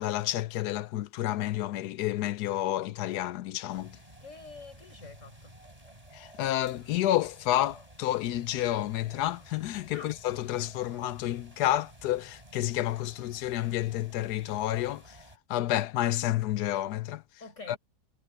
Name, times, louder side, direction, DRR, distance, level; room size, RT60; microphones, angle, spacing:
voice 1, 0.0-4.0 6.1-15.2 15.5-17.2 17.7-17.8, left 13 dB, 85° left, 1.2 m, -30 dB
sound 1, 3.7-15.4, right 1 dB, 20° right, 6.4 m, -53 dB
voice 2, 4.2-5.5 9.9-10.1 17.4-17.8, left 4 dB, 50° left, 5.6 m, -46 dB
omnidirectional pair, 1.7 m